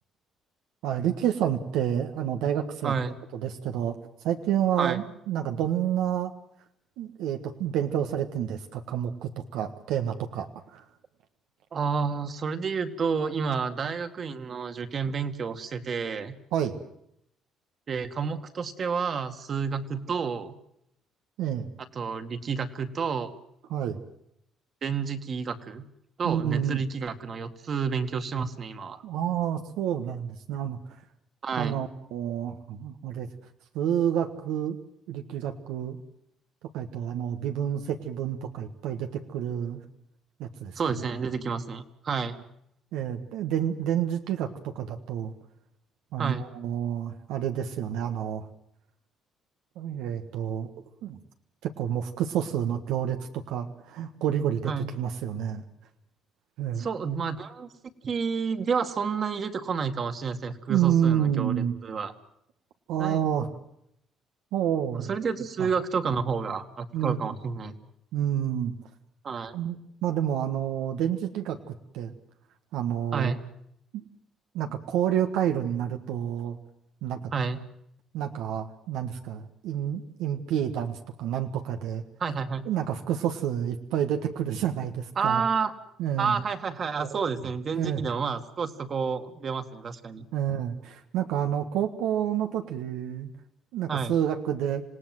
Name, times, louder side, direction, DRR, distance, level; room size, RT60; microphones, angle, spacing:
voice 1, 0.8-2.9 3.3-4.0 4.2-6.3 7.0-10.8 16.5-16.8 21.4-21.7 23.7-24.0 26.2-26.8 29.0-30.8 31.6-33.3 33.7-34.8 35.1-36.0 36.7-39.8 40.4-40.8 42.9-45.3 46.1-48.5 49.7-50.7 51.0-51.2 51.6-55.6 56.6-56.9 60.7-61.8 62.9-63.5 64.5-65.1 65.6-65.7 66.9-67.3 68.1-68.7 69.5-72.1 72.7-73.3 74.5-76.6 77.0-77.3 78.1-82.0 82.6-85.4 86.0-86.4 87.0-87.3 87.7-88.0 90.3-93.3 93.7-94.8, right 10 dB, 85° right, 5 dB, 1.5 m, -29 dB
voice 2, 2.8-3.1 4.8-5.0 11.7-16.4 17.9-20.5 22.0-23.3 24.8-25.9 26.2-29.0 31.4-31.8 40.8-42.4 46.2-46.5 54.7-54.9 56.8-57.7 58.0-62.1 63.0-63.3 64.9-67.7 69.2-69.5 73.1-73.4 77.3-77.6 82.2-82.6 85.2-85.7 86.2-90.3 93.9-94.1, right 5 dB, 45° right, 7 dB, 2.0 m, -30 dB
27.0 x 18.0 x 7.9 m, 0.75 s
cardioid pair, 105°, 0 cm